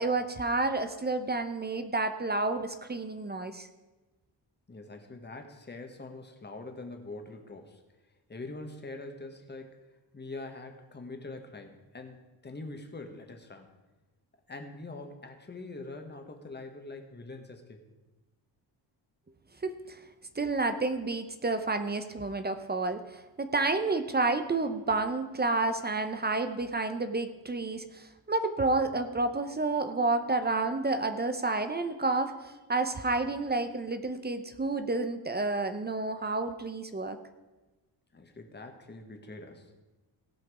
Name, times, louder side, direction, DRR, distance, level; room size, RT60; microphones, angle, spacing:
voice 1, 0.0-3.7 19.6-20.0 20.4-37.2, right 3 dB, 20° right, 9 dB, 0.6 m, -30 dB
voice 2, 4.7-7.8 8.3-9.8 10.1-13.7 14.5-17.8 38.1-39.7, left 2 dB, 25° left, 4 dB, 1.3 m, -44 dB
17.0 x 5.8 x 4.9 m, 1.1 s
wide cardioid pair, 130°, 45 cm